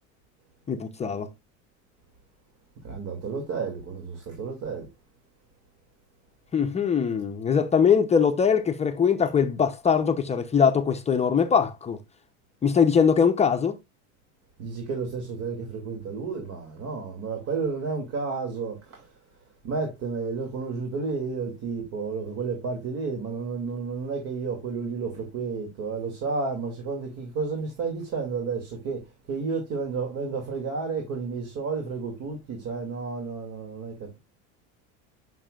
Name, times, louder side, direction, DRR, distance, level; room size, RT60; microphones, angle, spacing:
voice 1, 0.7-1.3 6.5-12.0 12.6-13.8, left 6 dB, 20° left, 0.7 m, -22 dB
voice 2, 2.8-4.9 14.6-19.1 19.6-34.2, right 4 dB, 55° right, 2.5 m, -31 dB
8.8 x 6.0 x 2.4 m
cardioid pair, 135°, 32 cm